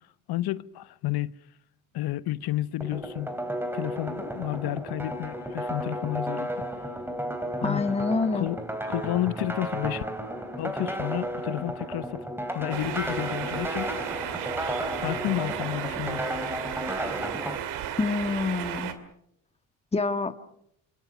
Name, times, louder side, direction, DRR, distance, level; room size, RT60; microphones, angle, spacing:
voice 1, 0.3-1.3 1.9-3.3 3.7-6.6 7.6-7.8 8.3-8.6 8.9-10.0 10.6-12.2 12.5-14.0 15.0-16.2, left 15 dB, 65° left, 1.0 m, -31 dB
sound 1, 2.8-17.6, equal, 5° right, 3.5 m, -33 dB
voice 2, 7.6-8.5 18.0-18.9 19.9-20.3, left 3 dB, 15° left, 1.6 m, -26 dB
sound 2, 12.7-18.9, right 10 dB, 80° right, 2.5 m, -34 dB
27.5 x 23.5 x 6.1 m
supercardioid pair, 75°, 40 cm